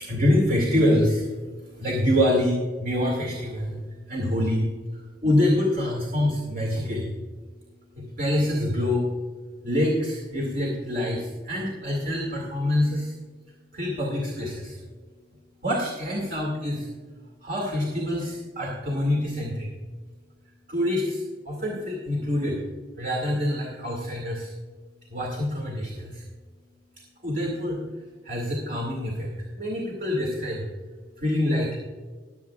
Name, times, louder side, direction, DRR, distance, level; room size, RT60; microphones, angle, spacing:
voice 1, 0.0-9.1 9.6-13.2 13.7-14.8 15.6-16.9 17.4-19.7 20.7-22.6 23.0-24.5 25.1-26.2 27.2-30.7 31.2-31.8, left 1 dB, 50° right, -2 dB, 2.2 m, -26 dB
21.0 x 7.8 x 2.4 m, 1.5 s
head